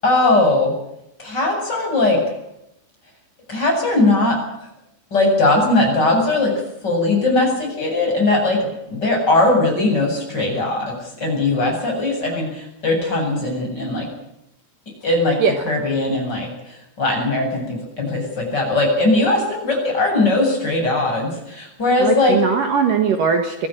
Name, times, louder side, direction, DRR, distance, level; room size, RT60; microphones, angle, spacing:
voice 1, 0.0-0.7 1.2-2.2 3.5-4.4 5.1-6.5 6.8-14.1 15.0-15.4 15.7-16.5 17.0-22.4, left 2 dB, 25° left, 0 dB, 8.5 m, -19 dB
voice 2, 15.4-15.7 22.0-23.7, right 6 dB, 60° right, 6 dB, 2.9 m, -20 dB
24.0 x 15.5 x 9.2 m, 0.82 s
omnidirectional pair, 4.8 m